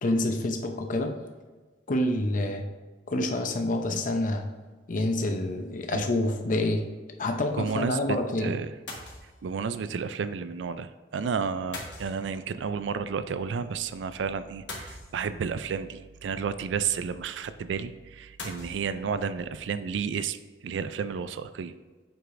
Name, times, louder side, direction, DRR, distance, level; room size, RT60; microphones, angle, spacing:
voice 1, 0.0-1.2 1.9-2.7 3.1-4.5 4.9-6.9 7.2-8.6, left 1 dB, 45° left, 5 dB, 0.6 m, -27 dB
voice 2, 7.6-8.0 8.4-8.7 9.4-20.4 20.6-21.7, right 6 dB, 75° right, 12 dB, 0.4 m, -31 dB
sound 1, 8.9-9.5 11.7-12.7 14.7-15.6 18.4-18.8, left 2 dB, 75° left, 1.3 m, -41 dB
7.8 x 4.8 x 2.5 m, 1.4 s
head